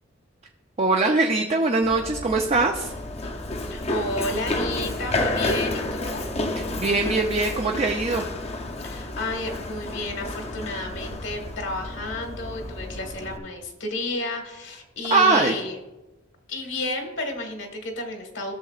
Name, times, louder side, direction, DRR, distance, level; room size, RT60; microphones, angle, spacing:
voice 1, 0.8-2.9 6.8-8.2 15.1-15.5, right 3 dB, 35° right, 2 dB, 0.5 m, -21 dB
Run, 1.8-13.4, left 2 dB, 35° left, 0.7 m, -31 dB
voice 2, 3.6-6.3 8.8-15.8 16.5-18.5, left 2 dB, 75° left, 4 dB, 1.6 m, -32 dB
13.5 x 6.9 x 2.4 m, 1.0 s
head